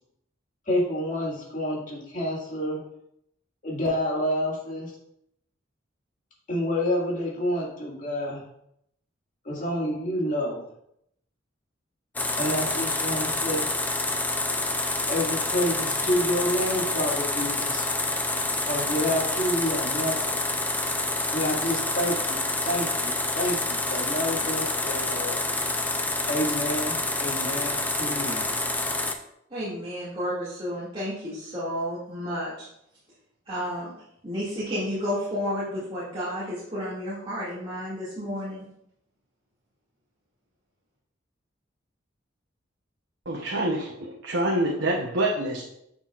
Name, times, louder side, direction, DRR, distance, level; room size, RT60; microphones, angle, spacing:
voice 1, 0.7-2.8 3.6-4.9 6.5-8.4 9.4-10.6 12.4-13.7 15.1-17.9 18.6-20.4 21.3-25.4 26.3-28.5, left 1 dB, 45° left, -4 dB, 2.2 m, -28 dB
sound 1, 12.1-29.1, left 2 dB, 10° left, 0.5 m, -27 dB
voice 2, 29.5-32.7 33.5-33.9 34.2-38.6, equal, 30° right, -11 dB, 2.3 m, -31 dB
voice 3, 43.3-45.6, right 1 dB, 80° right, -1 dB, 1.0 m, -26 dB
9.6 x 6.2 x 2.5 m, 0.76 s
head